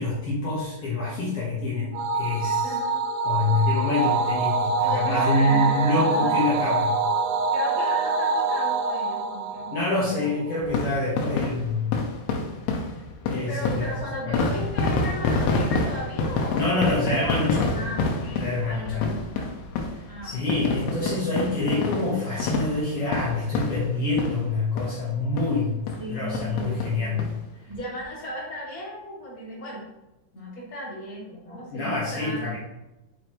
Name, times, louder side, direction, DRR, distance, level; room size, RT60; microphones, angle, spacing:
voice 1, 0.0-2.8 3.2-6.9 9.7-11.9 13.2-13.9 14.2-14.5 16.5-17.8 18.4-19.1 20.2-25.8 26.1-27.2 31.7-32.6, left 2 dB, 60° left, -6 dB, 1.6 m, -26 dB
sound 1, 1.9-10.5, right 3 dB, 90° right, 1.8 m, -25 dB
voice 2, 2.6-3.0 4.8-6.4 7.5-9.7 10.1-10.4 13.5-17.2 17.7-19.6 20.1-20.7 26.0-27.2 27.7-29.8 30.3-32.6, equal, 25° left, -7 dB, 2.5 m, -36 dB
sound 2, 10.6-24.5 24.8-24.9 25.4-25.5 25.9-26.0 26.3-27.3 27.7-27.8 28.0-28.1, left 3 dB, 90° left, 2.8 m, -28 dB
7.8 x 6.2 x 3.1 m, 0.96 s
omnidirectional pair, 4.4 m